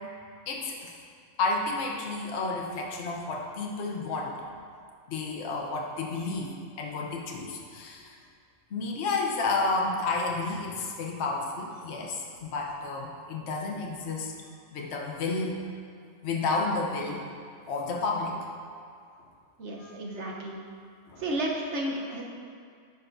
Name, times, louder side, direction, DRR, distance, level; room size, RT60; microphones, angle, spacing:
voice 1, 0.5-0.9 1.4-4.3 5.1-8.1 8.7-14.3 14.7-15.7 16.2-17.2 17.7-18.5 19.8-19.9 21.1-21.2, left 3 dB, 60° left, -1 dB, 1.0 m, -31 dB
voice 2, 19.6-20.6 21.2-22.2, right 1 dB, 60° right, -2 dB, 1.2 m, -32 dB
10.0 x 5.4 x 2.6 m, 2.2 s
omnidirectional pair, 1.4 m